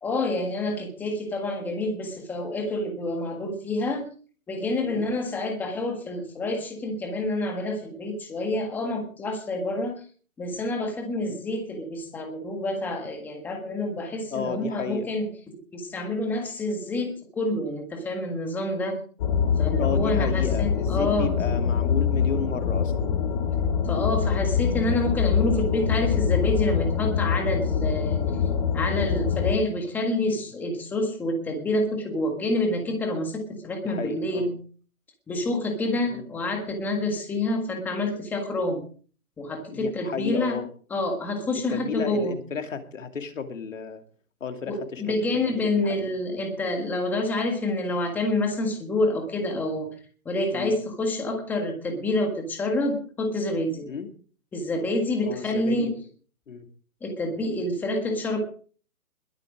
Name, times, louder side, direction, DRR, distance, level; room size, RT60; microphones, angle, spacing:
voice 1, 0.0-4.0 4.5-9.9 10.4-19.0 19.6-21.3 23.8-28.2 28.7-34.5 35.3-38.8 39.4-40.6 40.9-42.3 44.6-49.9 50.2-53.9 54.5-56.0 57.0-58.4, left 2 dB, 5° left, 3 dB, 1.6 m, -28 dB
voice 2, 14.3-15.1 19.8-23.1 30.3-30.4 33.8-34.5 36.1-36.3 39.7-40.7 41.7-44.0 44.4-46.1 50.5-50.7 53.9-54.1 55.2-56.0 56.5-56.7, left 6 dB, 60° left, 7 dB, 2.7 m, -33 dB
sound 1, 19.2-29.6, left 7 dB, 30° left, 2.6 m, -24 dB
21.5 x 8.3 x 5.1 m, 0.42 s
hypercardioid pair, 165°, 43 cm